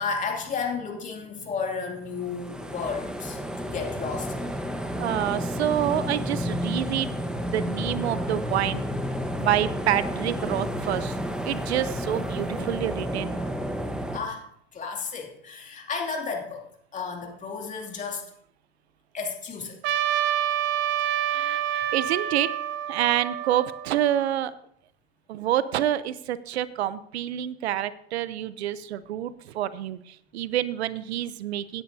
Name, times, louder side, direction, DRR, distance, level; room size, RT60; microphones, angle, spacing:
voice 1, 0.0-4.5 14.1-16.6 16.9-18.3 19.1-20.0, left 5 dB, 25° left, 1 dB, 2.6 m, -33 dB
sound 1, 2.2-14.2, equal, 5° right, 1.1 m, -31 dB
voice 2, 5.0-7.1 7.5-8.8 9.4-11.2 11.4-13.4 21.3-22.5 22.9-24.5 25.3-31.8, right 12 dB, 85° right, 15 dB, 0.7 m, -27 dB
Trumpet, 19.8-24.3, right 11 dB, 35° right, 0.8 m, -28 dB
17.0 x 9.8 x 2.7 m, 0.70 s
hypercardioid pair, 115°, 32 cm